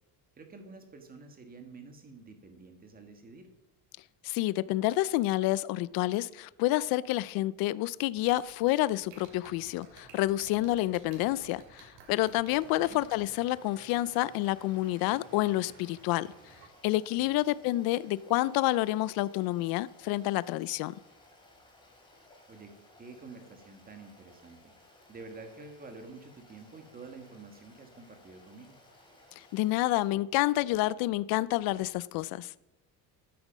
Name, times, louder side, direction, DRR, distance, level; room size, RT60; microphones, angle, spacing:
voice 1, 0.3-3.5 12.8-13.0 17.3-17.4 22.5-24.7 25.1-28.8, right 3 dB, 25° right, 1.7 m, -49 dB
voice 2, 4.2-16.3 16.8-20.9 29.4-32.5, left 17 dB, 70° left, 0.5 m, -29 dB
sound 1, 8.2-13.2, right 6 dB, 85° right, 3.6 m, -53 dB
sound 2, 9.1-16.7, right 4 dB, 65° right, 3.1 m, -58 dB
Stream, 12.5-30.1, left 1 dB, 10° left, 3.2 m, -59 dB
13.5 x 9.4 x 5.2 m
cardioid pair, 165°, 38 cm